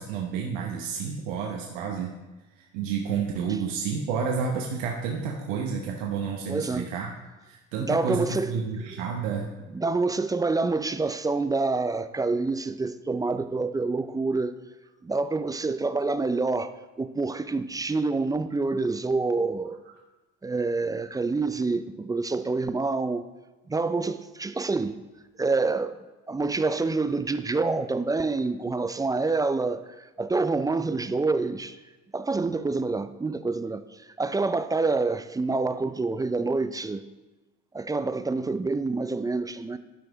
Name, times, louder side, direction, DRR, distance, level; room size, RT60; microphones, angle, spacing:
voice 1, 0.0-2.1 2.6-7.1 7.5-9.5, right 6 dB, 80° right, 1.0 m, -30 dB
voice 2, 6.5-6.9 7.8-8.6 9.7-14.6 15.0-19.8 20.4-23.3 23.7-25.0 25.4-26.0 26.3-31.8 32.1-37.0 37.7-39.8, right 3 dB, 10° right, 0.3 m, -27 dB
11.5 x 4.8 x 4.0 m
hypercardioid pair, 75°, 37 cm